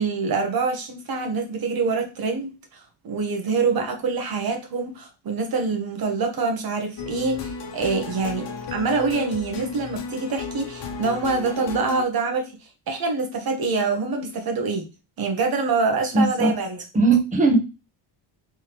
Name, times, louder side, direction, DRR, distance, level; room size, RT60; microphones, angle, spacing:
voice 1, 0.0-12.6 12.9-14.9 15.2-16.8, right 4 dB, 50° right, 1.1 m, -25 dB
sound 1, 7.0-12.1, left 4 dB, 60° left, 1.1 m, -34 dB
voice 2, 16.1-16.5 16.9-17.6, right 3 dB, 15° right, 1.0 m, -18 dB
3.5 x 3.5 x 2.9 m
cardioid pair, 100°, 46 cm